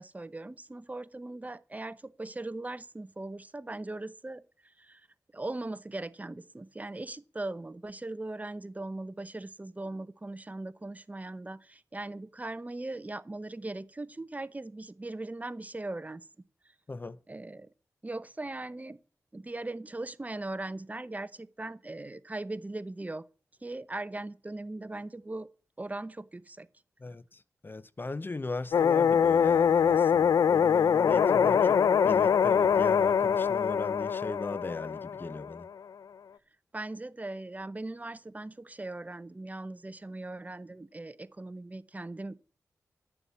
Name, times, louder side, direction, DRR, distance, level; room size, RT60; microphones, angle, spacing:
voice 1, 0.0-5.1 5.3-16.3 17.3-17.7 18.0-19.0 19.3-23.3 23.6-25.5 25.8-26.7 36.7-42.4, right 2 dB, 25° right, 0.8 m, -39 dB
voice 2, 16.9-17.2 27.0-35.7, left 3 dB, 35° left, 0.6 m, -38 dB
sound 1, 28.7-35.7, left 7 dB, 80° left, 0.5 m, -24 dB
11.0 x 7.1 x 8.2 m
cardioid pair, 50°, 6 cm